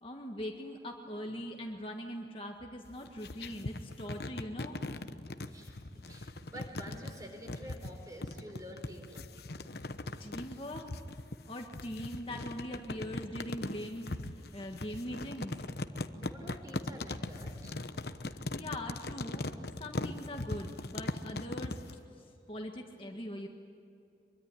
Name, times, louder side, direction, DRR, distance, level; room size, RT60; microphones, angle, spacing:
voice 1, 0.0-4.8 10.2-10.8 11.4-14.2 14.5-15.5 18.3-19.5 19.8-21.8 22.2-23.5, equal, 30° left, 2 dB, 1.6 m, -41 dB
sound 1, 2.8-22.0, left 2 dB, 65° left, 1.0 m, -40 dB
voice 2, 5.5-9.3 16.2-17.8, equal, 20° right, 3 dB, 4.5 m, -49 dB
24.0 x 23.0 x 9.9 m, 2.6 s
head